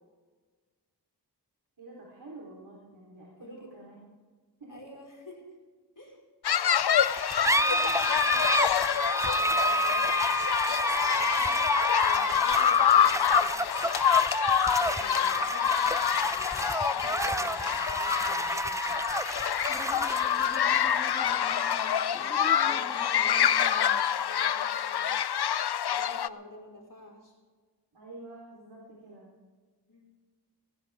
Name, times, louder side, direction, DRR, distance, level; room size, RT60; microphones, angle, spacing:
voice 1, 1.8-4.0 4.6-4.8 14.8-19.0 27.9-29.3, right 2 dB, 75° right, -4 dB, 3.9 m, -49 dB
voice 2, 4.7-5.4 5.9-6.2 7.4-13.6 17.0-17.2 19.9-25.1 25.9-27.4 29.9-30.2, left 1 dB, 50° left, -2 dB, 5.1 m, -49 dB
sound 1, 6.4-26.3, left 9 dB, 70° left, 0.6 m, -26 dB
sound 2, 7.0-24.0, right 1 dB, 10° right, 0.6 m, -30 dB
19.0 x 17.0 x 3.6 m, 1.4 s
wide cardioid pair, 55°, 40 cm